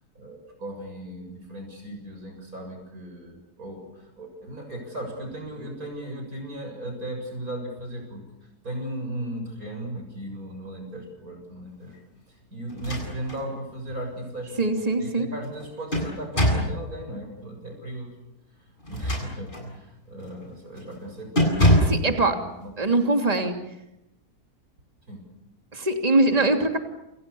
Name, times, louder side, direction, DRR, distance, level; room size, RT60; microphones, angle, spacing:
voice 1, 0.1-12.0 12.3-18.2 18.6-22.9 25.1-25.3, right 1 dB, 60° right, 3 dB, 7.7 m, -37 dB
sound 1, 12.7-13.4 13.9-14.0 15.4-16.8 18.8-19.7 20.2-20.4 20.8-21.0 21.4-22.1, equal, 30° left, 8.3 m, -23 dB
voice 2, 14.6-15.3 21.8-22.4 22.8-23.6 25.7-26.8, right 2 dB, 25° right, 4 dB, 3.0 m, -22 dB
29.5 x 28.0 x 7.1 m, 0.87 s
omnidirectional pair, 1.7 m